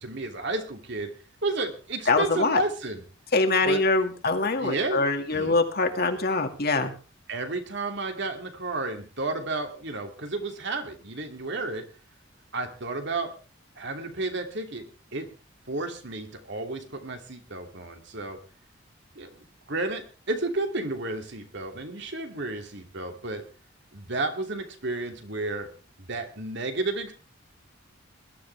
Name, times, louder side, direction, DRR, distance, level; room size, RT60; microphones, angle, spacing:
voice 1, 0.0-1.1 1.4-3.0 3.6-3.8 4.6-5.0 5.3-5.6 7.3-11.9 12.5-13.3 13.8-15.3 15.7-18.4 19.2-19.3 19.7-23.4 23.9-25.7 26.0-27.1, right 2 dB, 60° right, 4 dB, 2.9 m, -32 dB
voice 2, 2.1-2.6 3.3-6.9, left 3 dB, 50° left, 5 dB, 2.2 m, -24 dB
21.0 x 12.5 x 3.5 m, 0.36 s
head